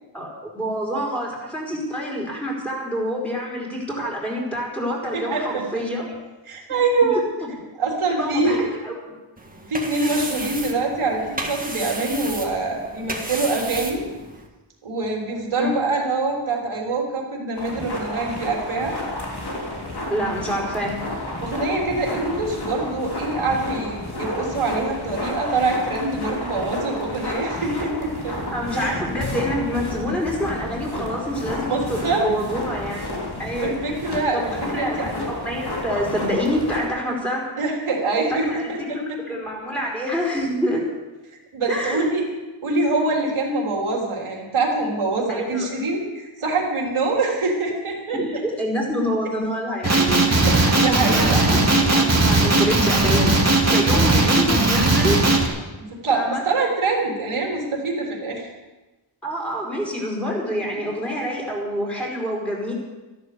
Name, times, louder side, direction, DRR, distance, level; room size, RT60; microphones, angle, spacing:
voice 1, 0.5-6.2 7.4-7.5 8.2-9.1 15.6-15.7 20.1-21.0 28.5-33.1 33.4-33.7 34.3-34.5 34.7-37.4 38.3-40.8 41.7-42.1 45.3-45.7 48.1-50.2 50.6-55.2 56.1-56.4 59.2-62.7, equal, 5° left, -3 dB, 4.7 m, -27 dB
voice 2, 6.5-7.2 7.8-8.7 9.7-14.0 14.8-19.0 21.4-28.4 28.7-28.9 31.6-32.3 33.6-34.4 34.7-35.1 37.6-39.2 41.5-42.2 42.6-48.4 50.3-51.6 55.8-58.5, right 3 dB, 85° right, -1 dB, 3.5 m, -24 dB
sound 1, 9.4-14.5, right 2 dB, 15° right, 1.8 m, -33 dB
sound 2, 17.5-36.9, left 1 dB, 50° left, 3.4 m, -31 dB
Male speech man speaking, 49.8-55.5, right 2 dB, 30° right, 2.2 m, -18 dB
13.5 x 12.0 x 6.8 m, 1.1 s
wide cardioid pair, 125°, 48 cm